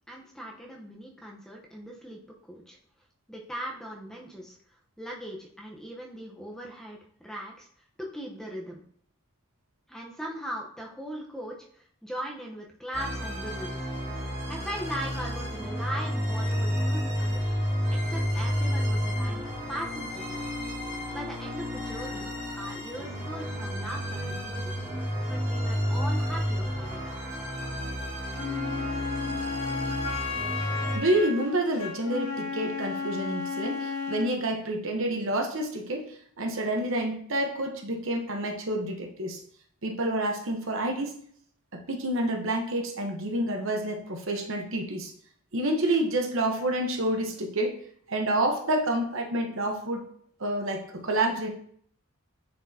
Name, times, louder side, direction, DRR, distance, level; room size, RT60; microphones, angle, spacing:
voice 1, 0.1-2.2 2.5-2.8 3.3-4.6 5.0-7.7 8.0-8.8 9.9-13.8 14.5-17.4 17.9-20.5 21.1-22.3 22.6-24.7 25.3-27.0, equal, ahead, -2 dB, 0.8 m, -39 dB
sound 1, 12.9-31.0, equal, 30° right, 1.9 m, -31 dB
Wind instrument woodwind instrument, 28.3-34.4, left 4 dB, 80° left, 0.8 m, -33 dB
voice 2, 30.9-39.4 39.8-41.2 41.7-45.1 45.5-47.7 48.1-50.0 50.4-51.5, right 1 dB, 65° right, 3 dB, 1.0 m, -28 dB
9.5 x 4.5 x 2.8 m, 0.62 s
head